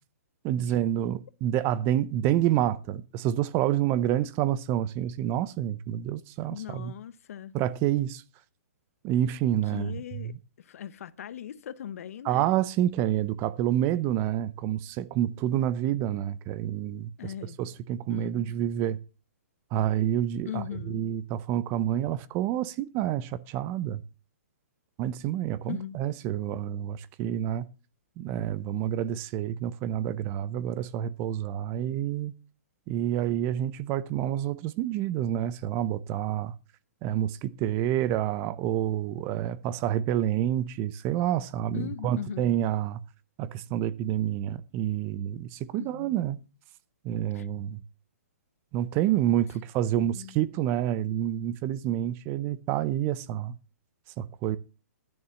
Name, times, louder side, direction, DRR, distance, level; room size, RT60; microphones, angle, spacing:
voice 1, 0.4-6.9 7.5-8.2 9.0-10.4 12.2-19.0 19.7-24.0 25.0-27.7 28.2-32.3 32.9-36.5 37.0-43.0 43.4-46.4 47.0-47.8 48.7-53.5 54.2-54.6, right 11 dB, 25° right, 0.6 m, -28 dB
voice 2, 6.5-7.6 9.7-12.5 17.2-17.6 18.1-18.5 20.5-21.0 25.7-26.0 41.7-42.5 45.8-46.2 47.3-47.5 49.9-50.5, left 10 dB, 60° left, 0.9 m, -39 dB
12.0 x 7.1 x 6.3 m
hypercardioid pair, 145°, 9 cm